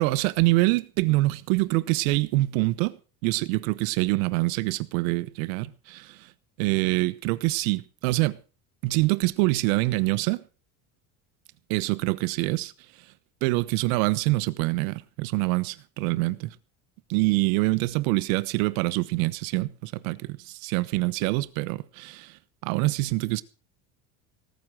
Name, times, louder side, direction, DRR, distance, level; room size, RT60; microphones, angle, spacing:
voice 1, 0.0-3.0 3.2-6.3 6.6-8.4 8.8-10.4 11.7-12.7 13.4-16.6 17.1-23.4, right 21 dB, 85° right, 1.1 m, -25 dB
18.5 x 8.9 x 6.2 m
supercardioid pair, 105°, 40 cm